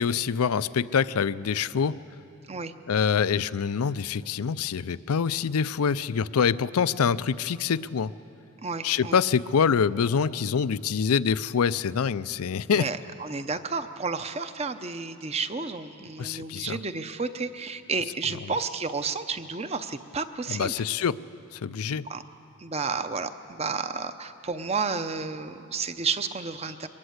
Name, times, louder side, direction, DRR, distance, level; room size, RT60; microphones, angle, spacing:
voice 1, 0.0-2.0 2.9-8.1 8.8-12.9 16.2-16.8 20.5-21.2 21.5-22.1, left 6 dB, 90° left, 17 dB, 0.5 m, -25 dB
voice 2, 8.6-9.2 12.7-20.7 21.9-22.2 22.6-26.9, right 4 dB, 30° right, 10 dB, 0.7 m, -31 dB
23.0 x 19.5 x 8.0 m, 2.7 s
head